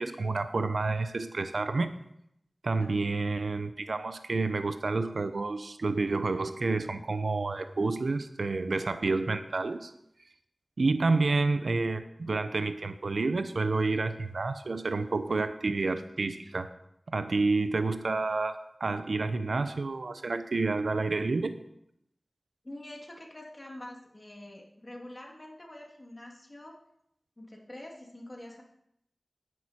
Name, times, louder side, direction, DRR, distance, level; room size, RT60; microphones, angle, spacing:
voice 1, 0.0-1.9 2.6-9.9 10.8-16.7 17.1-21.5, right 3 dB, 85° right, 10 dB, 0.8 m, -29 dB
voice 2, 22.6-26.8 27.4-28.6, left 1 dB, 35° left, -1 dB, 2.7 m, -46 dB
10.5 x 9.9 x 4.5 m, 0.77 s
wide cardioid pair, 55°, 0 cm